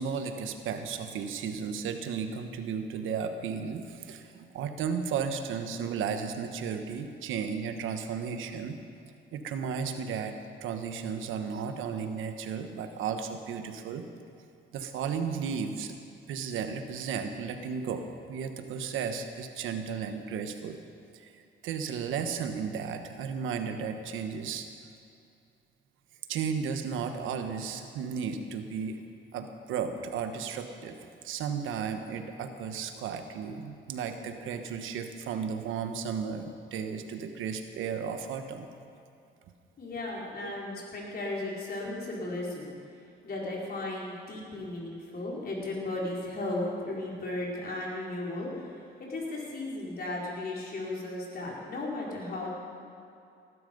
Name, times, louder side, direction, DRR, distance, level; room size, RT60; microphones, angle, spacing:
voice 1, 0.0-8.8 9.3-10.3 10.6-14.1 14.7-15.9 16.3-20.8 21.1-24.7 26.3-29.0 29.3-31.0 31.2-38.7 40.4-40.5, right 6 dB, 85° right, 7 dB, 1.2 m, -34 dB
voice 2, 39.8-42.7 43.2-48.7 49.1-52.5, left 2 dB, 50° left, -3 dB, 4.4 m, -35 dB
19.0 x 11.5 x 5.3 m, 2.6 s
cardioid pair, 90°, 20 cm